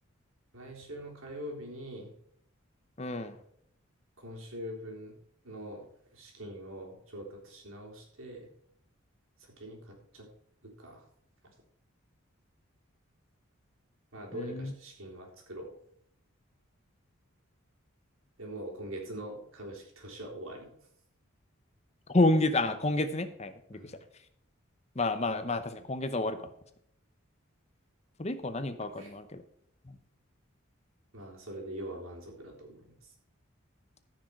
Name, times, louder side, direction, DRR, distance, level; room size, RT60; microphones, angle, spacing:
voice 1, 0.5-2.1 4.2-5.2 5.4-8.5 9.6-10.3 10.6-11.0 14.1-15.8 18.4-20.7 23.7-24.0 29.0-29.1 31.1-33.0, right 1 dB, 75° right, 0 dB, 3.8 m, -43 dB
voice 2, 3.0-3.4 14.3-14.7 22.1-23.9 25.0-26.5 28.2-29.4 29.9-30.0, left 2 dB, 30° left, 10 dB, 0.8 m, -29 dB
14.5 x 6.4 x 4.8 m, 0.70 s
head